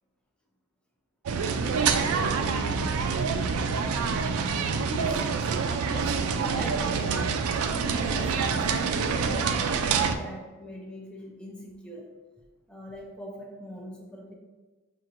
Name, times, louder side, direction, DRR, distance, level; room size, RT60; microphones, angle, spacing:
sound 1, 1.3-10.2, right 5 dB, 65° right, 0.3 m, -26 dB
voice 1, 4.9-5.5 5.9-12.1 12.7-14.3, equal, 5° left, -2 dB, 0.4 m, -41 dB
5.5 x 3.0 x 2.5 m, 1.3 s
head